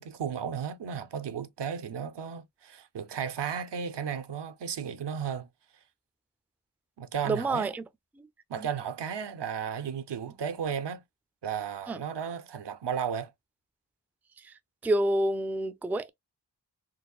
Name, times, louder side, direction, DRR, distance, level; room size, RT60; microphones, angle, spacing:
voice 1, 0.0-5.5 7.0-7.7 8.5-11.0 11.4-13.3, right 7 dB, 80° right, 0.6 m, -34 dB
voice 2, 7.3-7.8 8.2-8.3 8.6-8.7 11.9-12.0 14.4-14.5 14.8-16.1, right 1 dB, 5° right, 0.3 m, -28 dB
4.1 x 2.4 x 2.2 m
wide cardioid pair, 80°, 41 cm